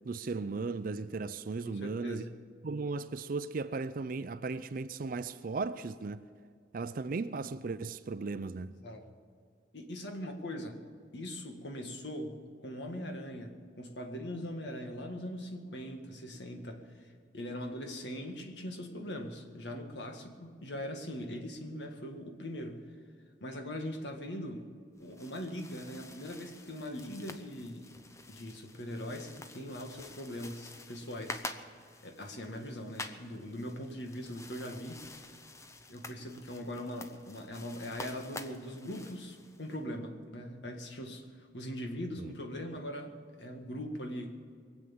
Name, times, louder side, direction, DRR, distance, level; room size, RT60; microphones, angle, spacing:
voice 1, 0.0-2.3 2.6-6.3 6.7-8.8 42.2-42.3, right 4 dB, 50° right, 0.5 m, -36 dB
voice 2, 1.7-2.3 8.8-9.0 9.7-10.8 11.1-17.1 17.3-22.8 23.4-24.7 25.0-27.9 28.3-31.4 32.0-35.0 35.9-44.6, equal, 80° left, 1.8 m, -41 dB
sound 1, 25.0-39.8, left 2 dB, 15° left, 0.7 m, -48 dB
22.0 x 8.2 x 7.2 m
head